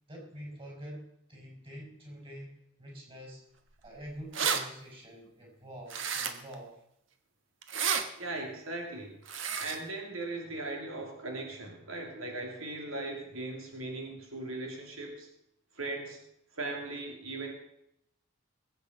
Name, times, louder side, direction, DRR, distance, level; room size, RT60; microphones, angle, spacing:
voice 1, 0.1-3.4 3.8-6.8, equal, 25° right, -1 dB, 5.1 m, -46 dB
sound 1, 3.9-4.0 4.1-4.6 5.9-6.5 7.6-8.0 9.3-9.8, right 6 dB, 60° right, 1.5 m, -31 dB
voice 2, 8.2-9.2 9.6-15.3 15.7-16.2 16.5-17.5, right 2 dB, 80° right, 2 dB, 2.6 m, -38 dB
21.0 x 8.6 x 5.3 m, 0.79 s
head